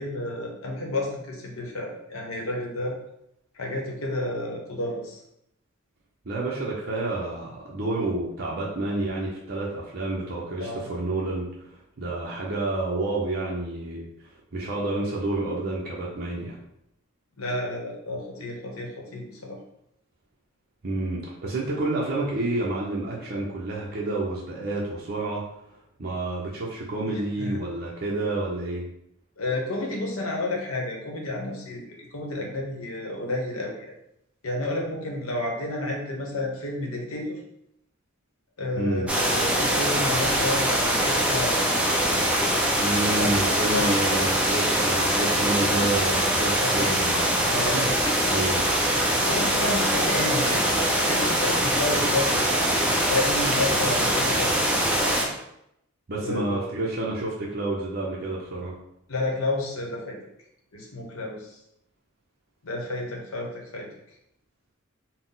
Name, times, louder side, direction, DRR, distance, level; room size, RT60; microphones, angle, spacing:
voice 1, 0.0-3.0 3.5-5.2 10.6-10.9 17.4-19.6 27.1-27.5 29.4-33.9 34.4-37.4 38.6-41.5 43.2-43.9 46.6-47.0 47.5-47.8 49.2-50.6 51.0-52.4 53.0-54.7 56.2-56.6 59.1-60.2 60.7-61.6 62.6-63.9, left 2 dB, 90° left, 0 dB, 0.9 m, -31 dB
voice 2, 6.2-16.6 20.8-25.4 26.0-28.9 38.8-39.1 42.8-47.3 47.7-47.9 48.3-48.7 56.1-58.7, right 2 dB, 50° right, -5 dB, 0.6 m, -29 dB
sound 1, 39.1-55.3, right 1 dB, 5° right, 0.5 m, -23 dB
4.0 x 2.1 x 3.9 m, 0.78 s
head